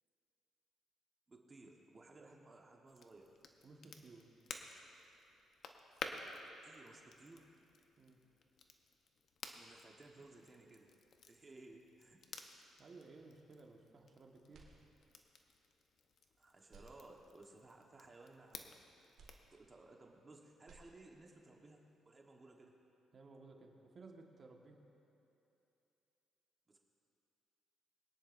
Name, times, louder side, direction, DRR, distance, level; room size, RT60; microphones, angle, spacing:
voice 1, 1.3-3.4 6.6-7.5 9.5-11.0 11.2-12.2 16.4-18.7 19.5-22.7 26.7-26.8, right 2 dB, 30° right, 0 dB, 1.3 m, -59 dB
Crackle, 2.9-19.5, left 4 dB, 65° left, 0.9 m, -54 dB
voice 2, 3.6-4.3 8.0-8.2 12.8-14.7 23.1-24.8, right 3 dB, 45° right, 1 dB, 1.4 m, -58 dB
sound 1, 14.5-15.4 15.9-16.0 16.6-17.7 19.2-20.3 20.5-21.5, right 3 dB, 65° right, 1.9 m, -64 dB
22.5 x 10.0 x 2.6 m, 2.9 s
cardioid pair, 90°, 0 cm